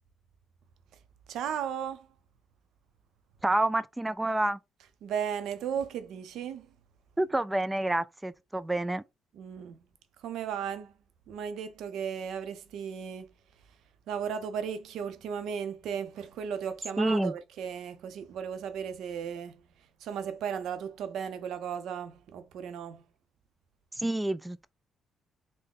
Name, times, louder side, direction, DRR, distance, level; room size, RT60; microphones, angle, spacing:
voice 1, 1.3-2.1 5.0-6.7 9.3-9.8 10.2-10.9 11.3-13.3 14.1-19.6 20.0-23.0, right 8 dB, 80° right, 0.5 m, -35 dB
voice 2, 3.4-4.6 7.2-9.0 17.0-17.3 24.0-24.7, right 1 dB, 10° right, 0.3 m, -28 dB
3.7 x 2.1 x 3.6 m
cardioid pair, 90°, 0 cm